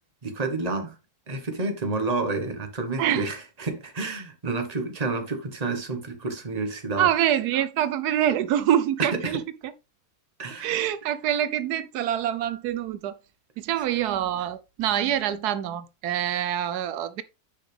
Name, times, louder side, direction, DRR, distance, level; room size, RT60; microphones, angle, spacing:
voice 1, 0.2-0.9 1.3-7.1 9.1-9.4 10.4-10.7, right 3 dB, 25° right, 1.4 m, -29 dB
voice 2, 3.0-3.3 6.9-9.7 10.6-13.2 13.6-17.2, right 11 dB, 85° right, 1.2 m, -25 dB
10.0 x 5.5 x 3.4 m
omnidirectional pair, 1.6 m